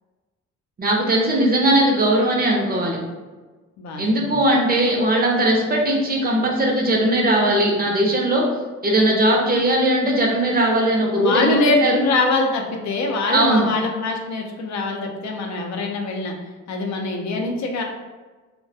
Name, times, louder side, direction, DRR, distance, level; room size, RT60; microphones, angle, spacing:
voice 1, 0.8-3.0 4.0-8.5 8.8-12.0 13.3-13.7, right 1 dB, 30° right, -1 dB, 0.5 m, -19 dB
voice 2, 3.8-4.4 11.1-16.3 16.7-17.8, left 3 dB, 65° left, 2 dB, 0.5 m, -23 dB
2.2 x 2.1 x 2.6 m, 1.3 s
cardioid pair, 85°, 30 cm